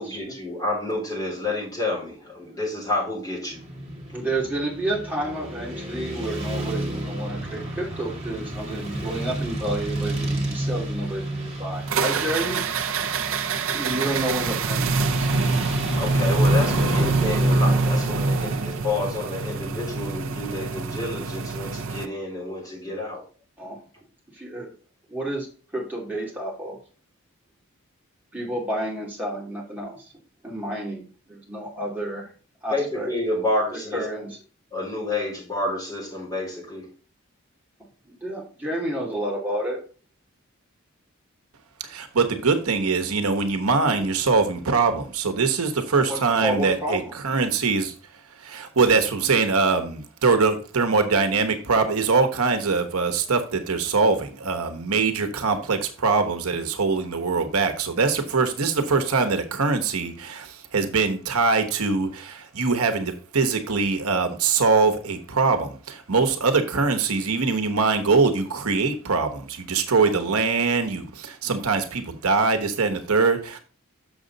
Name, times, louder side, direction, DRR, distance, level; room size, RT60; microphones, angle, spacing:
voice 1, 0.0-3.6 16.0-23.2 32.7-34.3 34.7-36.9, left 2 dB, 15° left, 4.1 m, -29 dB
Motorcycle / Traffic noise roadway noise, 3.5-20.1, right 1 dB, 30° right, 1.7 m, -31 dB
voice 2, 4.1-12.6 13.7-15.3 23.6-23.8 24.3-24.7 25.1-25.5 25.7-26.8 28.3-30.0 30.4-32.3 32.6-33.1 33.9-34.4 38.1-39.8 46.1-47.1, right 1 dB, 5° right, 2.6 m, -30 dB
sound 1, 11.9-22.1, right 3 dB, 65° right, 0.6 m, -25 dB
voice 3, 41.8-47.9 48.4-73.6, right 4 dB, 85° right, 1.1 m, -23 dB
6.8 x 6.5 x 4.0 m
head